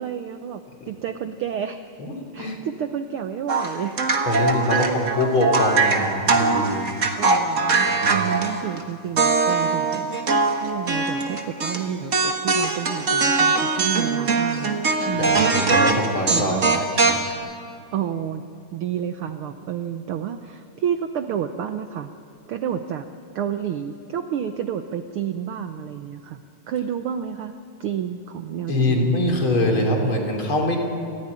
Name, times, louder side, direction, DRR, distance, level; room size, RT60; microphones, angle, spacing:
voice 1, 0.0-2.0 2.3-4.0 4.7-5.3 7.2-15.5 16.3-16.8 17.9-18.4 18.7-22.1 22.5-23.1 23.3-26.4 26.7-27.5 27.8-29.4, right 9 dB, 70° right, 8 dB, 1.3 m, -30 dB
voice 2, 2.0-2.6 4.3-6.9 7.8-8.2 15.1-17.2 28.7-30.8, left 1 dB, 45° left, 1 dB, 4.2 m, -24 dB
sound 1, 3.5-8.8 9.2-11.8 12.1-17.3, right 4 dB, 35° right, 1.4 m, -21 dB
29.0 x 15.0 x 9.8 m, 2.4 s
omnidirectional pair, 3.3 m